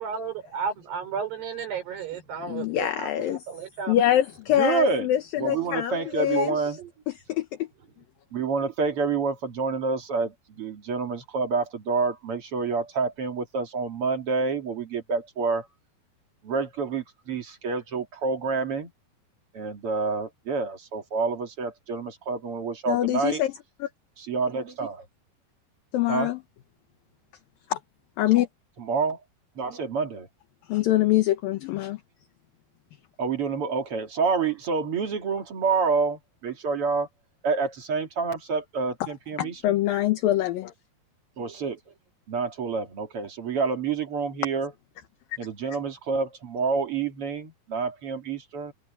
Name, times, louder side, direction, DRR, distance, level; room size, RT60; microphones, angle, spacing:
voice 1, 0.0-4.0 6.3-6.5 6.8-6.9, right 6 dB, 85° right, 7.2 m, -33 dB
voice 2, 2.5-3.4 3.9-6.6 7.1-7.7 22.9-23.5 23.8-23.9 25.9-26.4 27.7-27.8 28.2-28.5 30.7-32.0 39.4-40.7, left 13 dB, 70° left, 2.7 m, -24 dB
voice 3, 4.6-5.1 5.4-6.8 8.3-15.7 16.4-18.9 19.5-23.4 24.2-25.0 26.1-26.3 28.8-29.2 29.6-30.3 33.2-37.1 37.4-39.8 41.4-41.8 42.3-44.7 45.4-48.7, right 4 dB, 40° right, 2.5 m, -28 dB
omnidirectional pair, 4.6 m